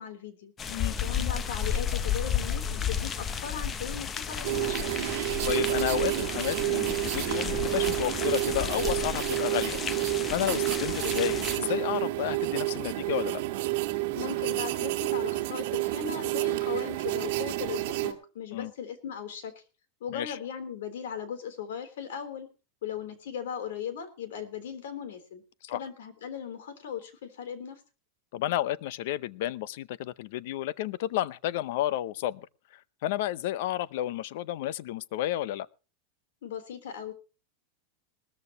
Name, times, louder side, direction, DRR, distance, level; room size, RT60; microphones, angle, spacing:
voice 1, 0.0-0.5 1.0-4.9 14.1-19.6 20.0-22.5 22.8-25.4 25.7-27.8 36.4-37.1, left 8 dB, 80° left, 3.5 m, -38 dB
sound 1, 0.6-11.6, left 7 dB, 15° left, 0.6 m, -33 dB
sound 2, 4.4-18.1, right 19 dB, 50° right, 2.0 m, -29 dB
voice 2, 5.4-9.8 10.3-13.4 18.5-18.7 20.1-20.4 25.7-25.8 28.3-32.4 32.7-35.7, left 13 dB, 55° left, 0.6 m, -31 dB
20.0 x 14.0 x 3.0 m
supercardioid pair, 170°, 0 cm